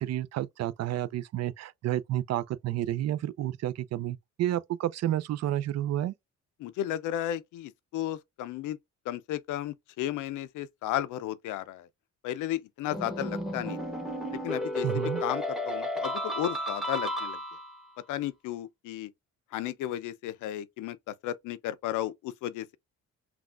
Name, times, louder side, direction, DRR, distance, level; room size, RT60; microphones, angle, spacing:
voice 1, 0.0-6.1 14.8-15.2, right 13 dB, 60° right, 0.4 m, -30 dB
voice 2, 6.6-8.8 9.1-11.9 12.2-13.8 14.3-17.4 18.1-19.1 19.5-22.8, left 12 dB, 80° left, 0.5 m, -34 dB
sound 1, 12.9-17.8, equal, ahead, 0.9 m, -33 dB
5.9 x 2.3 x 2.4 m
cardioid pair, 90°, 30 cm